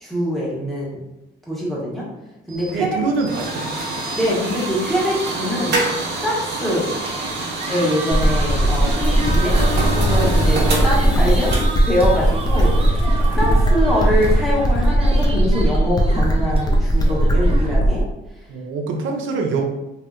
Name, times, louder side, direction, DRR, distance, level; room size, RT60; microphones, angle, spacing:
voice 1, 0.0-1.0 1.5-2.1 2.5-3.0 4.1-5.8 6.1-6.9 7.7-9.6 9.9-11.5 11.8-13.0 13.3-18.0, equal, ahead, -6 dB, 1.2 m, -23 dB
sound 1, 2.5-15.3, right 2 dB, 60° right, 1.0 m, -27 dB
sound 2, 2.7-17.8, right 3 dB, 30° right, 0.5 m, -35 dB
voice 2, 2.7-3.8 18.5-19.6, right 4 dB, 80° right, 3 dB, 0.6 m, -24 dB
sound 3, 8.1-18.1, right 1 dB, 20° left, 0.5 m, -18 dB
3.2 x 2.7 x 2.4 m, 0.98 s
cardioid pair, 90°, 20 cm